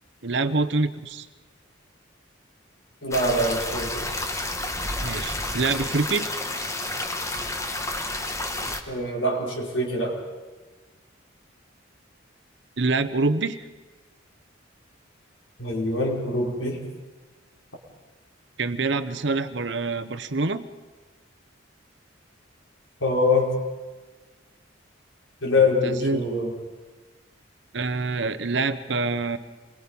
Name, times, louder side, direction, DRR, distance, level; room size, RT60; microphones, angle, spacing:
voice 1, 0.2-1.3 5.0-6.3 12.8-13.6 18.6-20.6 25.8-26.3 27.7-29.4, right 3 dB, 60° right, 12 dB, 1.0 m, -25 dB
voice 2, 3.0-4.3 8.9-10.2 15.6-16.8 23.0-23.5 25.4-26.5, left 2 dB, 85° left, -2 dB, 5.1 m, -24 dB
sound 1, 3.1-8.8, left 2 dB, 15° left, 1.3 m, -30 dB
27.5 x 22.5 x 5.5 m, 1.3 s
head